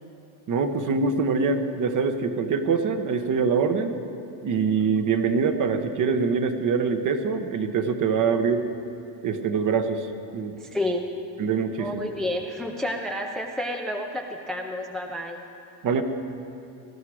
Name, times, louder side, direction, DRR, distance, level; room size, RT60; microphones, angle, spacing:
voice 1, 0.5-4.0 4.4-8.7 9.2-10.1 10.3-10.5 11.4-12.1 15.8-16.0, right 5 dB, 40° right, 8 dB, 1.0 m, -24 dB
voice 2, 10.6-11.1 11.8-15.4, left 1 dB, ahead, 3 dB, 0.5 m, -30 dB
19.0 x 12.0 x 4.9 m, 2.6 s
cardioid pair, 130°, 48 cm